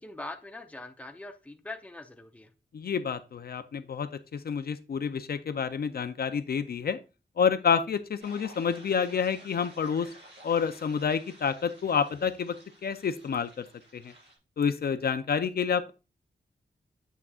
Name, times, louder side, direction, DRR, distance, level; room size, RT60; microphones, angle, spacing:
voice 1, 0.0-2.5, left 2 dB, 5° left, 6 dB, 0.6 m, -42 dB
voice 2, 2.7-7.0 7.4-10.1 10.4-12.6 12.8-13.6 13.9-14.1 14.6-15.9, left 6 dB, 60° left, 11 dB, 0.5 m, -28 dB
sound 1, 8.2-14.3, right 1 dB, 70° right, 4.4 m, -53 dB
8.1 x 6.0 x 2.3 m, 0.30 s
wide cardioid pair, 165°, 18 cm